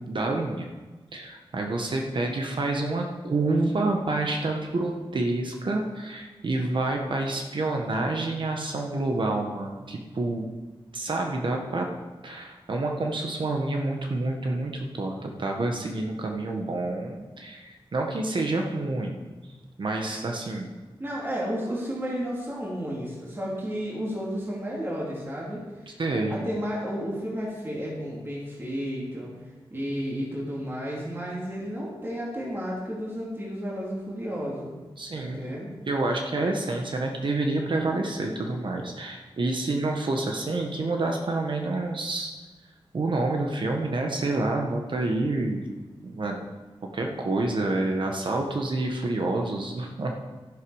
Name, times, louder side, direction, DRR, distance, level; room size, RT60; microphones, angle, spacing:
voice 1, 0.0-0.7 1.1-10.5 10.9-11.9 12.2-19.2 19.8-20.7 26.0-26.4 35.0-35.4 35.9-42.3 42.9-45.7 46.0-46.5 46.9-50.1, right 2 dB, 60° right, 2 dB, 1.3 m, -28 dB
voice 2, 21.0-34.7 35.1-35.7, equal, 25° right, -5 dB, 2.8 m, -32 dB
12.0 x 11.5 x 4.9 m, 1.2 s
wide cardioid pair, 135°, 10 cm